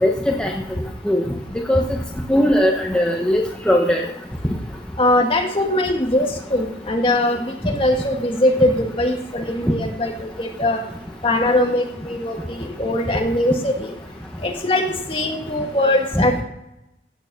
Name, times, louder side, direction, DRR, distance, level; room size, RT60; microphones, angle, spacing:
voice 1, 0.0-0.5 1.1-1.2 1.7-1.8 2.3-4.0 16.1-16.3, equal, 5° left, 0 dB, 0.9 m, -18 dB
voice 2, 5.0-10.1 10.4-10.8 11.2-13.9 14.4-16.4, left 1 dB, 30° left, 2 dB, 1.8 m, -21 dB
16.0 x 7.1 x 5.4 m, 0.87 s
head